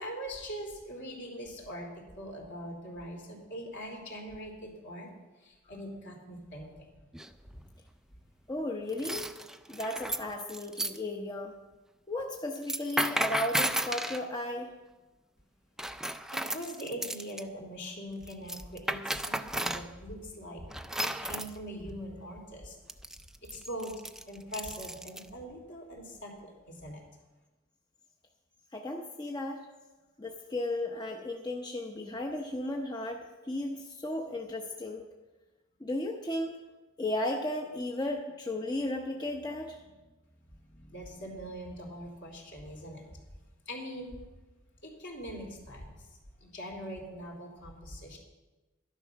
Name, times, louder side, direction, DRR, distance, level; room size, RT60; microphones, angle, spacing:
voice 1, 0.0-1.9 2.2-5.1 5.4-7.0 16.3-22.8 23.4-23.9 24.3-27.0 40.9-43.0 43.7-44.2 44.8-46.1 46.4-48.2, equal, 60° left, 0 dB, 3.1 m, -42 dB
sound 1, 7.1-7.5 8.9-11.0 12.6-14.2 15.8-17.4 18.3-19.9 20.7-21.5 22.9-25.3, right 1 dB, ahead, 0.4 m, -34 dB
voice 2, 8.5-9.3 9.7-11.5 12.1-14.7 28.7-29.6 30.2-35.0 35.8-36.6 37.0-39.8, left 1 dB, 20° left, 1 dB, 0.8 m, -35 dB
12.5 x 11.0 x 5.8 m, 1.2 s
head